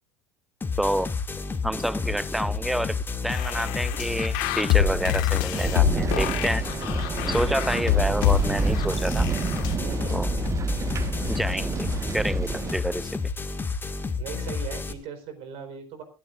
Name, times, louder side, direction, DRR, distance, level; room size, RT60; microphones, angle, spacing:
sound 1, 0.6-14.9, left 4 dB, 15° left, 1.9 m, -31 dB
voice 1, 0.8-1.1 1.6-6.6 7.3-9.3 10.1-10.3 11.3-11.9 12.1-13.2, equal, ahead, 0.7 m, -28 dB
sound 2, 3.3-9.7, left 10 dB, 60° left, 1.7 m, -26 dB
sound 3, 5.5-12.8, right 4 dB, 25° right, 1.4 m, -29 dB
voice 2, 9.8-10.2 14.2-16.0, right 6 dB, 50° right, 4.3 m, -38 dB
26.5 x 13.5 x 2.5 m
figure-of-eight pair, 70°, 12 cm